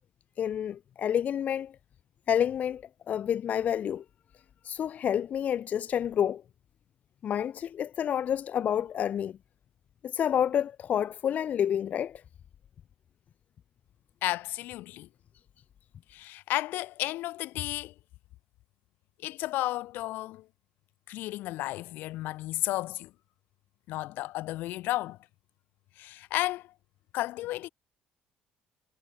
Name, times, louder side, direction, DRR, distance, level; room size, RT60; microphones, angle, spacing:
voice 1, 0.4-1.7 2.3-4.0 4.6-6.4 7.2-9.3 10.0-12.2, left 9 dB, 50° left, 1.7 m, -29 dB
voice 2, 14.2-15.1 16.1-17.9 19.2-20.5 21.1-23.1 23.9-25.2 26.0-26.7 27.1-27.7, left 17 dB, 80° left, 4.3 m, -33 dB
cardioid pair, 110°, 3 cm